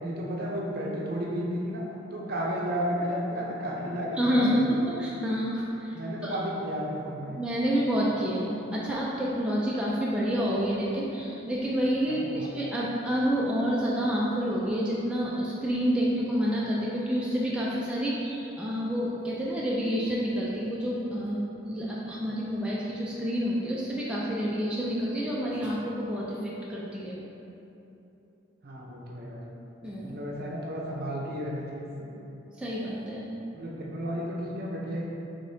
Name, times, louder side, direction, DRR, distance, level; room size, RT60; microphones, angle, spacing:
voice 1, 0.0-1.8 2.1-4.7 5.9-7.4 12.2-12.5 28.6-29.4 30.0-32.1 33.5-35.1, equal, 50° right, -3 dB, 0.7 m, -33 dB
voice 2, 4.2-5.9 6.2-6.4 7.3-27.2 29.8-30.2 32.6-33.3, equal, 5° right, -7 dB, 0.4 m, -28 dB
5.1 x 3.7 x 2.7 m, 2.9 s
head